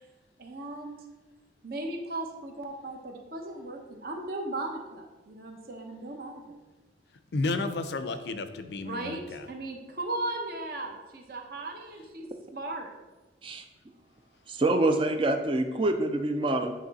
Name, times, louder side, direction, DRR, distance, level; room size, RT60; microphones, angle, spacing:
voice 1, 0.4-1.0 1.6-6.4 8.8-12.9, right 2 dB, 55° right, 2 dB, 0.9 m, -37 dB
voice 2, 7.3-9.5, left 3 dB, 70° left, 10 dB, 0.5 m, -32 dB
voice 3, 14.5-16.7, right 2 dB, 30° right, 6 dB, 0.4 m, -26 dB
8.9 x 3.1 x 4.0 m, 1.2 s
head